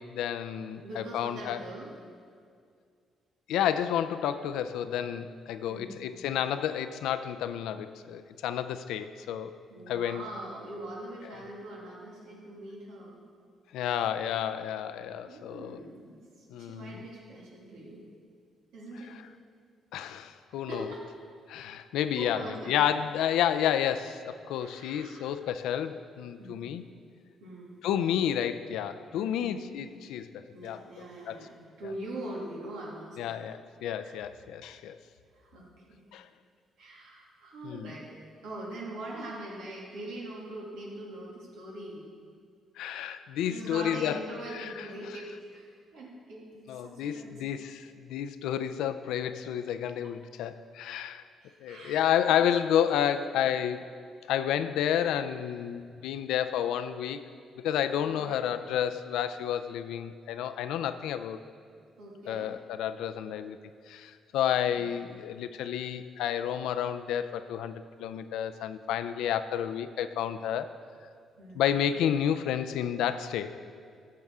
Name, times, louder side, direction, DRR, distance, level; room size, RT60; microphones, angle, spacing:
voice 1, 0.0-1.6 3.5-9.5 9.9-10.2 13.7-15.8 16.5-17.1 19.9-20.9 21.5-26.9 27.8-31.4 33.2-35.0 36.1-36.2 37.6-37.9 42.8-44.2 44.5-44.9 46.7-51.3 51.6-53.8 54.3-57.2 57.6-61.4 62.3-63.6 63.9-70.7 71.5-73.6, left 9 dB, 90° left, 11 dB, 0.4 m, -30 dB
voice 2, 0.8-1.9 5.7-6.2 9.7-13.2 15.3-18.0 18.7-19.2 20.7-21.0 22.2-22.7 24.6-25.4 26.4-26.7 27.4-27.8 29.2-29.7 30.5-33.4 34.0-34.1 35.3-36.0 36.8-38.1 38.4-42.0 43.5-47.4 51.4-52.4 54.5-54.6 58.1-58.4 62.0-62.5 64.7-64.9 71.4-71.7, right 1 dB, 90° right, -4 dB, 2.4 m, -42 dB
13.5 x 7.5 x 3.6 m, 2.2 s
cardioid pair, 90°, 0 cm